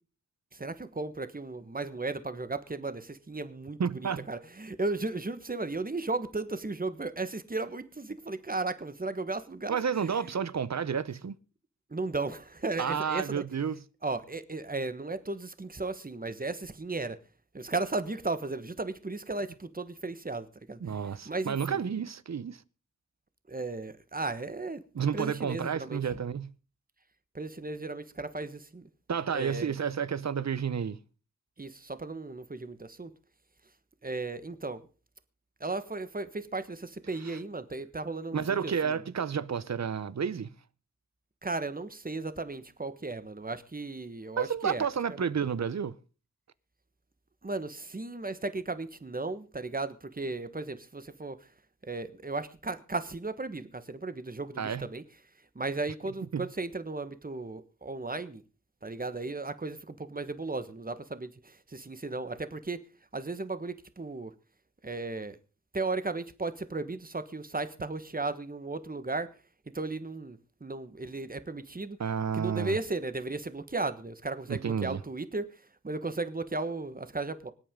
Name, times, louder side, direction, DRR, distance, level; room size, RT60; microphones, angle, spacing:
voice 1, 0.5-9.8 10.0-10.3 11.9-13.4 14.0-17.2 17.5-21.8 23.5-26.0 27.3-28.9 29.3-29.7 31.6-33.1 34.0-34.9 35.6-39.0 41.4-45.2 47.4-51.5 51.8-55.0 55.5-58.4 58.8-62.9 63.1-64.3 64.8-65.4 65.7-69.3 69.7-72.0 72.3-77.5, right 3 dB, 30° right, 1.3 m, -35 dB
voice 2, 3.8-4.2 9.7-11.4 12.8-13.8 20.8-22.6 24.9-26.5 29.1-31.0 37.2-37.4 38.3-40.5 44.4-46.0 54.6-54.9 56.3-56.4 72.0-72.8 74.5-75.0, right 7 dB, 60° right, 0.7 m, -31 dB
25.0 x 8.7 x 3.7 m
wide cardioid pair, 75°, 31 cm